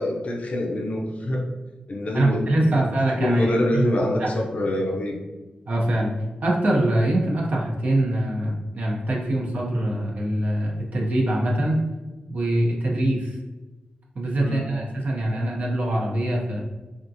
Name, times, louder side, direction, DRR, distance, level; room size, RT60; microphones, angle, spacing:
voice 1, 0.0-1.5 1.9-2.8 3.2-5.2 14.4-14.9, left 1 dB, 50° left, 0 dB, 0.5 m, -25 dB
voice 2, 2.1-3.9 4.2-4.3 5.7-6.1 6.4-11.8 12.3-13.4 14.2-16.6, right 1 dB, 60° right, -3 dB, 0.7 m, -23 dB
3.5 x 2.4 x 2.7 m, 1.2 s
cardioid pair, 80°, 3 cm